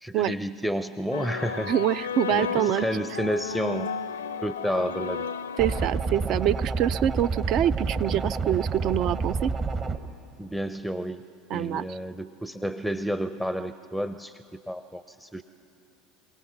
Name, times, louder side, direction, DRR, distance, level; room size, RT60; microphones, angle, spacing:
voice 1, 0.0-1.7 2.3-3.9 4.4-5.3 10.4-11.2 11.5-14.3 14.7-15.4, equal, ahead, 12 dB, 0.6 m, -30 dB
sound 1, 1.1-6.3, left 6 dB, 85° left, 0.5 m, -33 dB
voice 2, 1.7-2.8 5.6-9.5 11.5-12.0, right 11 dB, 50° right, 17 dB, 0.4 m, -25 dB
sound 2, 5.6-10.0, right 4 dB, 35° right, 1.2 m, -29 dB
27.0 x 17.5 x 6.0 m, 2.5 s
hypercardioid pair, 75°, 0 cm